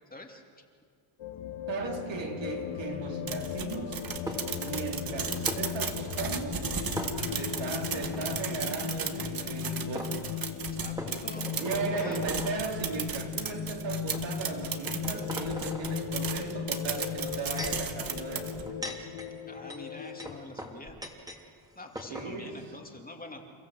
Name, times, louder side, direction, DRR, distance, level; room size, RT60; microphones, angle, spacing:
voice 1, 0.1-0.7 7.2-7.4 10.7-12.3 19.5-21.0 21.8-23.4, left 2 dB, 15° left, 2 dB, 2.6 m, -46 dB
sound 1, 1.2-20.4, left 8 dB, 70° left, 1.5 m, -37 dB
voice 2, 1.7-4.1 4.6-6.7 7.4-10.2 11.6-18.8 22.1-22.6, right 4 dB, 60° right, 1 dB, 3.9 m, -37 dB
sound 2, 3.3-18.7, right 7 dB, 45° right, 1.8 m, -36 dB
sound 3, 4.3-4.7 5.5-5.6 7.0-7.6 8.0-8.2 9.5-9.6 10.0-10.1 11.0-12.6 13.3-13.5 14.1-14.3 14.8-16.0 17.1-17.9 18.5-21.4 21.7-21.8 22.0-22.3, equal, 5° right, 2.9 m, -39 dB
29.5 x 14.5 x 7.9 m, 2.1 s
cardioid pair, 100°, 50 cm